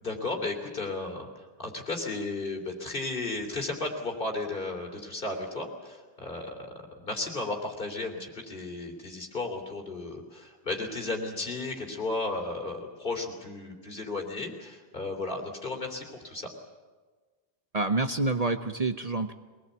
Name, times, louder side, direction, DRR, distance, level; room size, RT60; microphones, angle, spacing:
voice 1, 0.0-6.7 7.0-16.5, left 2 dB, 55° left, 2 dB, 3.5 m, -34 dB
voice 2, 17.7-19.3, right 3 dB, 40° right, 8 dB, 0.8 m, -27 dB
22.5 x 20.0 x 8.2 m, 1.4 s
omnidirectional pair, 1.1 m